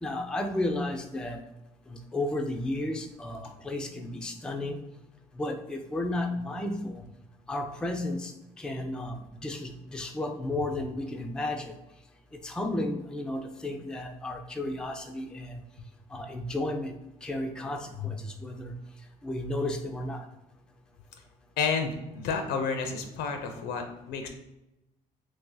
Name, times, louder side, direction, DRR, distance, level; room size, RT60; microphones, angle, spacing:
voice 1, 0.0-1.4 1.9-4.8 5.4-7.0 7.5-11.7 12.4-15.6 16.1-18.7 19.2-20.3, left 1 dB, 5° left, 4 dB, 0.3 m, -33 dB
voice 2, 21.6-24.3, left 5 dB, 85° left, 5 dB, 0.5 m, -30 dB
2.7 x 2.6 x 3.8 m, 0.92 s
cardioid pair, 110°, 17 cm